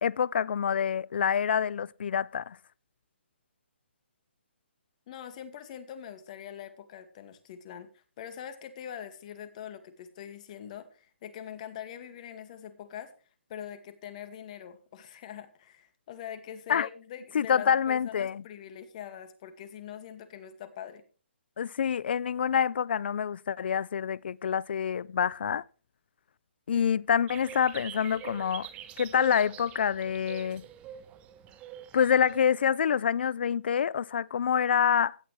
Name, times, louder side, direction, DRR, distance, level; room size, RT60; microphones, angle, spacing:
voice 1, 0.0-2.6 16.7-16.9 17.3-18.4 21.6-25.6 26.7-28.7 29.0-30.6 31.9-35.2, left 8 dB, 60° left, 0.5 m, -27 dB
voice 2, 5.1-13.1 13.5-21.0, left 9 dB, 40° left, 2.1 m, -43 dB
sound 1, 27.3-32.4, right 10 dB, 20° right, 1.3 m, -45 dB
16.0 x 10.0 x 3.3 m
hypercardioid pair, 145°, 6 cm